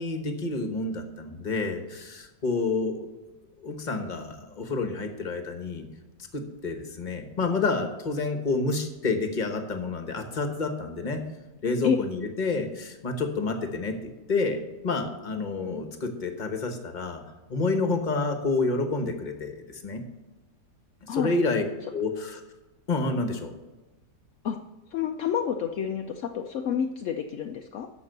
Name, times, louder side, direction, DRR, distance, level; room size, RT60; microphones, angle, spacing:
voice 1, 0.0-3.1 3.6-5.8 6.3-11.2 11.6-14.0 14.3-17.2 17.5-20.0 21.0-21.6 21.9-22.4 22.9-23.5, left 3 dB, 30° left, 6 dB, 1.1 m, -29 dB
voice 2, 24.9-27.9, left 8 dB, 70° left, 4 dB, 0.7 m, -28 dB
13.0 x 5.4 x 6.6 m, 1.1 s
omnidirectional pair, 1.9 m